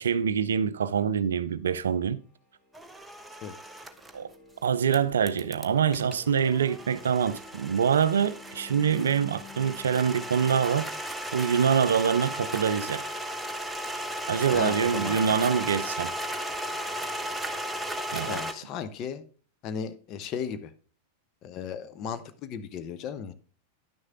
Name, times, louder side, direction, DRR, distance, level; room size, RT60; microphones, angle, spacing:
voice 1, 0.0-2.2 4.1-4.3 4.6-10.9 11.3-13.0 14.3-16.1 18.1-18.4, right 7 dB, 65° right, 0.4 m, -25 dB
sound 1, 2.1-10.6, left 3 dB, 10° left, 2.4 m, -52 dB
sound 2, 2.7-4.1 4.9-18.5, equal, 5° right, 0.8 m, -35 dB
voice 2, 14.5-15.2 18.3-19.2 19.6-20.7 21.4-23.3, left 7 dB, 35° left, 0.8 m, -35 dB
10.5 x 6.4 x 3.6 m
figure-of-eight pair, 90°, 0 cm